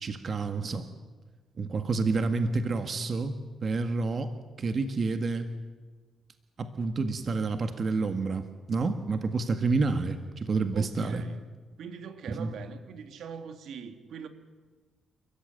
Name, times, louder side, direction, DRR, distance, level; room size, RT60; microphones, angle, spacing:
voice 1, 0.0-0.9 1.6-3.3 3.6-4.3 4.6-5.5 6.6-8.4 8.7-11.2 12.3-12.5, right 3 dB, 45° right, 7 dB, 1.8 m, -29 dB
voice 2, 10.7-11.5 11.8-14.3, right 7 dB, 75° right, 8 dB, 2.3 m, -42 dB
29.5 x 14.5 x 9.3 m, 1.4 s
cardioid pair, 90°, 0 cm